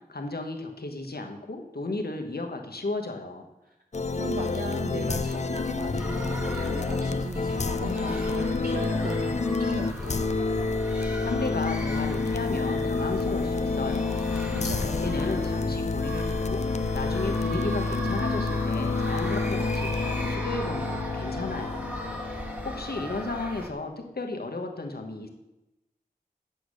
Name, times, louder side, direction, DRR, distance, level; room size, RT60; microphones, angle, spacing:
voice 1, 0.1-3.5 11.2-14.3 15.0-16.6 16.9-21.9 22.6-25.3, left 2 dB, 85° left, 4 dB, 1.2 m, -34 dB
sound 1, 3.9-23.1, left 3 dB, 45° left, 0.5 m, -28 dB
voice 2, 4.2-10.3 14.5-15.2, right 2 dB, 70° right, 0 dB, 1.0 m, -38 dB
sound 2, 6.0-23.7, equal, 10° right, 1.3 m, -38 dB
8.3 x 6.9 x 6.3 m, 0.94 s
wide cardioid pair, 50°, 16 cm